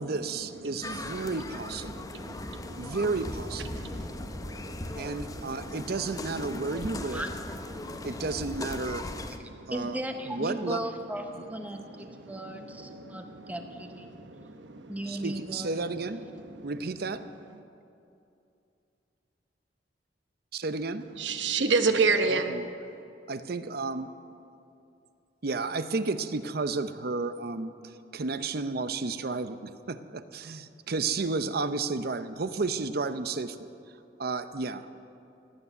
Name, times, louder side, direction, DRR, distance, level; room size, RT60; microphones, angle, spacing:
voice 1, 0.0-1.9 2.8-3.8 5.0-7.2 8.0-9.0 9.7-10.0 10.3-10.8 15.1-16.2 16.6-17.2 20.5-21.1 22.3-22.7 23.3-24.1 25.4-27.7 28.1-33.7 34.2-34.9, right 3 dB, 60° right, 12 dB, 0.7 m, -32 dB
voice 2, 0.6-1.3 1.9-3.0 3.7-5.8 7.7-8.1 9.3-9.7 11.7-13.6 14.0-15.3 16.5-16.7 21.2-22.5, right 4 dB, 90° right, 8 dB, 1.1 m, -32 dB
sound 1, 0.8-9.4, left 1 dB, 20° left, 0.7 m, -38 dB
voice 3, 9.7-14.1 14.9-15.7, right 1 dB, 10° right, 5 dB, 1.0 m, -36 dB
17.0 x 9.6 x 8.1 m, 2.7 s
head